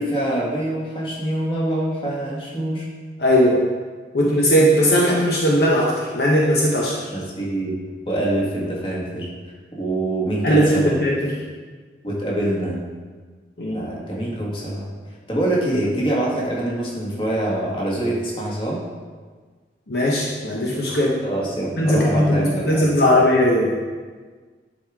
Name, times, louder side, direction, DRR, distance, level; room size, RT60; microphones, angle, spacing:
voice 1, 0.0-2.9 4.2-4.3 7.1-7.7 8.1-9.3 9.7-11.0 12.0-12.8 13.7-14.9 15.3-18.8 21.2-22.9, right 1 dB, 30° left, -5 dB, 1.7 m, -25 dB
voice 2, 3.2-3.6 4.1-7.1 10.4-11.4 13.6-13.9 19.9-21.2 21.8-23.8, equal, 60° left, -3 dB, 0.9 m, -18 dB
10.5 x 4.9 x 3.6 m, 1.5 s
head